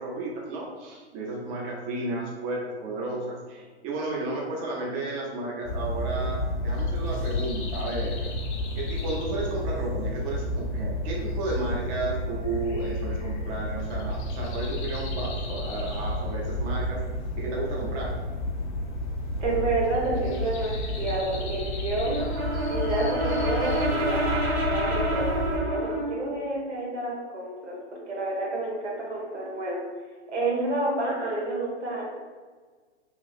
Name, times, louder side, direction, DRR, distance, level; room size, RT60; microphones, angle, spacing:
voice 1, 0.0-8.3 8.7-17.0 17.4-18.1, right 2 dB, 25° right, -3 dB, 0.5 m, -33 dB
sound 1, 5.6-25.6, left 1 dB, 45° left, 0.6 m, -31 dB
voice 2, 19.4-22.2 22.7-27.8 28.1-29.8 30.3-32.1, right 2 dB, 90° right, -3 dB, 1.1 m, -29 dB
Brass instrument, 22.0-26.2, right 1 dB, 65° right, 1.1 m, -28 dB
3.0 x 2.7 x 2.4 m, 1.5 s
hypercardioid pair, 130°, 34 cm